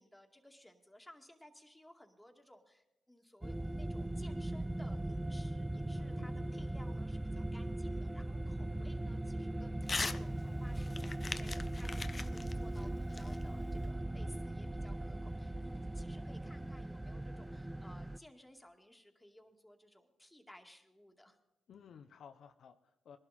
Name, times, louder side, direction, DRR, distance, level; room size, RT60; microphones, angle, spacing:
voice 1, 0.0-21.4, left 1 dB, 10° left, 3 dB, 2.4 m, -59 dB
sound 1, 3.4-18.2, right 1 dB, 15° right, 0.4 m, -39 dB
voice 2, 6.0-6.6 21.7-23.2, left 7 dB, 65° left, 8 dB, 0.7 m, -55 dB
Crumpling crinkling / Tearing, 9.8-10.2 10.5-13.9, left 3 dB, 35° left, 0.8 m, -41 dB
20.5 x 11.5 x 4.3 m, 0.91 s
supercardioid pair, 50°, 0 cm